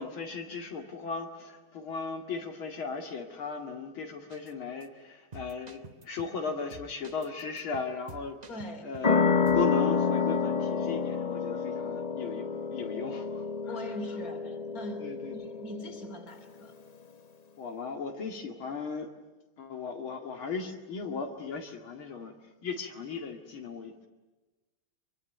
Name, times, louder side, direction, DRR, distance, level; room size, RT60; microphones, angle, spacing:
voice 1, 0.0-8.4 8.8-13.9 15.0-15.6 17.6-19.1 19.6-22.3 22.6-24.1, left 4 dB, 80° left, 2 dB, 3.0 m, -37 dB
sound 1, 4.3-4.5 4.8-4.9 5.3-6.4 6.7-9.2 9.5-9.7, right 3 dB, 30° right, 0.8 m, -49 dB
voice 2, 8.5-8.9 13.7-16.7, left 1 dB, 45° left, 6 dB, 3.6 m, -42 dB
sound 2, 9.0-16.2, left 5 dB, 60° left, 0.4 m, -29 dB
25.0 x 24.5 x 9.2 m, 1.1 s
omnidirectional pair, 2.2 m